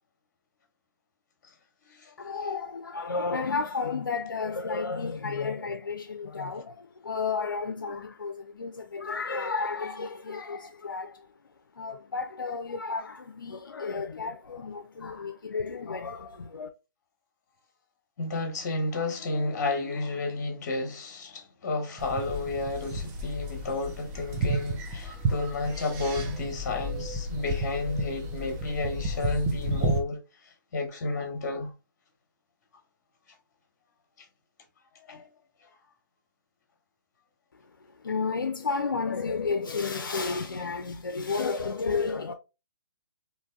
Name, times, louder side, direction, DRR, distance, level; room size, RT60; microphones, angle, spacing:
voice 1, 2.2-11.3 11.8-16.7 38.0-42.3, left 4 dB, 90° left, 0.4 m, -32 dB
voice 2, 18.2-30.2 30.7-31.7 35.1-35.3, left 2 dB, 50° left, 1.1 m, -31 dB
sound 1, 22.0-30.0, right 1 dB, 25° right, 0.7 m, -32 dB
3.2 x 2.6 x 2.3 m
hypercardioid pair, 135°, 11 cm